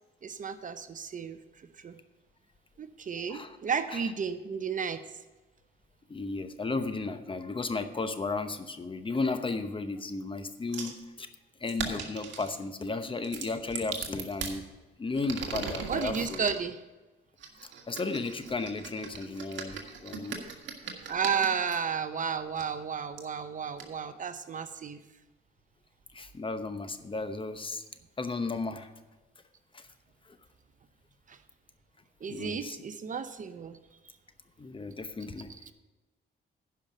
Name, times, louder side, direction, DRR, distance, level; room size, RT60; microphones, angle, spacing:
voice 1, 0.2-1.4 1.8-2.0 2.8-5.0 15.9-16.8 21.1-25.0 31.3-31.4 32.2-33.8 35.7-35.8, right 6 dB, 40° right, 11 dB, 0.7 m, -33 dB
voice 2, 3.2-3.6 3.9-4.0 6.1-11.3 11.6-14.6 15.0-16.5 17.9-20.4 26.1-27.8 28.2-28.9 29.7-29.9 30.3-30.4 32.3-32.8 34.6-35.5, left 3 dB, 25° left, 9 dB, 0.9 m, -34 dB
sound 1, 10.7-11.0 11.7-12.5 13.2-14.6 15.1-16.6 17.4-21.8 22.6-22.7 23.2-23.3 23.8-23.9, right 6 dB, 70° right, 1.7 m, -39 dB
10.5 x 5.6 x 7.5 m, 1.1 s
cardioid pair, 90°, 20 cm